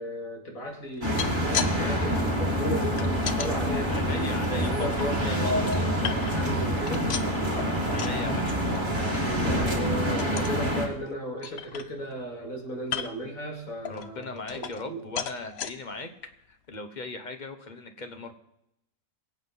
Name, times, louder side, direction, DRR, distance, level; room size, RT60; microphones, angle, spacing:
voice 1, 0.0-4.0 4.5-7.1 9.7-15.1, equal, 80° left, 1 dB, 2.9 m, -35 dB
sound 1, 0.9-1.7 2.0-3.5 4.0-5.0 5.5-6.5 6.8-8.2 8.6-8.8 9.1-9.2 9.6-9.8 10.2-10.6 11.1-11.2 11.4-12.2 12.8-13.3 13.8-14.9 15.2-15.7 16.3-16.4 16.7-16.8, left 8 dB, 55° left, 0.9 m, -35 dB
sound 2, 1.0-10.9, equal, 35° right, 2.3 m, -27 dB
voice 2, 3.9-5.9 7.5-7.6 7.9-8.8 13.8-16.1 16.5-18.3, left 3 dB, 35° left, 7 dB, 1.3 m, -39 dB
23.5 x 8.0 x 4.1 m, 0.83 s
omnidirectional pair, 1.4 m